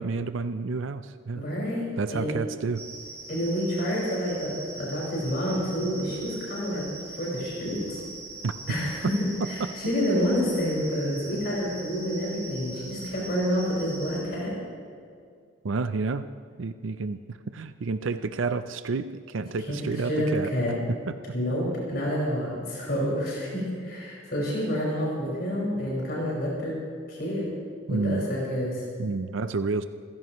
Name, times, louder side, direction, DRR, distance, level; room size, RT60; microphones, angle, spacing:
voice 1, 0.0-1.4 2.0-2.8 8.4-8.5 15.6-16.3 16.6-20.5 21.1-21.2 27.9-28.2 29.0-29.8, right 4 dB, 85° right, 10 dB, 0.5 m, -30 dB
voice 2, 1.4-2.4 3.3-8.0 8.7-14.6 19.7-20.8 21.3-26.8 27.1-27.5 27.9-28.8, equal, 55° left, -5 dB, 5.3 m, -28 dB
sound 1, 2.7-14.2, right 3 dB, 15° right, 2.5 m, -42 dB
26.0 x 16.0 x 3.1 m, 2.2 s
head